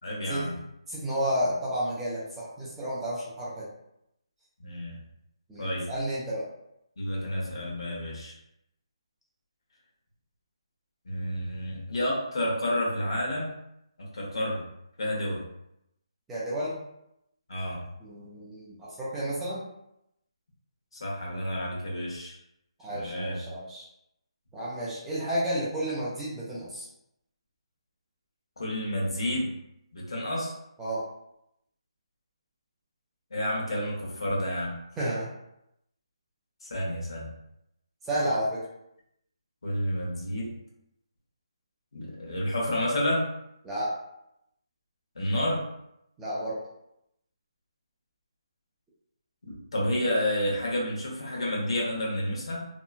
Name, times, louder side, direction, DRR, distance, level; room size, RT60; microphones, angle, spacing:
voice 1, 0.0-0.5 4.6-5.0 5.6-5.8 7.0-8.3 11.0-13.5 14.0-14.6 15.0-15.4 17.5-17.8 20.9-22.4 22.9-23.4 28.6-29.5 29.9-30.5 33.3-34.7 36.6-37.3 39.6-40.5 41.9-43.3 45.1-45.6 49.4-52.7, left 1 dB, 65° left, -3 dB, 1.0 m, -30 dB
voice 2, 0.9-3.7 5.5-6.5 16.3-16.8 18.0-19.6 22.8-23.8 24.5-26.9 30.8-31.0 35.0-35.3 38.1-38.6 43.6-43.9 46.2-46.6, equal, 5° right, -9 dB, 0.3 m, -31 dB
2.8 x 2.4 x 2.4 m, 0.81 s
hypercardioid pair, 170°, 3 cm